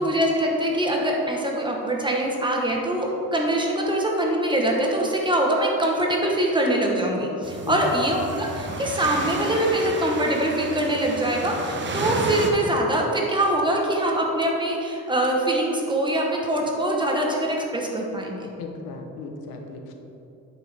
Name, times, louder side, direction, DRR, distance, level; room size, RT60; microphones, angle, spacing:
voice 1, 0.0-18.5, right 1 dB, 15° right, -1 dB, 1.1 m, -23 dB
sound 1, 7.4-12.5, right 3 dB, 30° right, 0.8 m, -32 dB
voice 2, 18.6-19.9, left 4 dB, 85° left, 3 dB, 1.0 m, -35 dB
9.1 x 6.0 x 3.5 m, 2.9 s
cardioid pair, 120°, 36 cm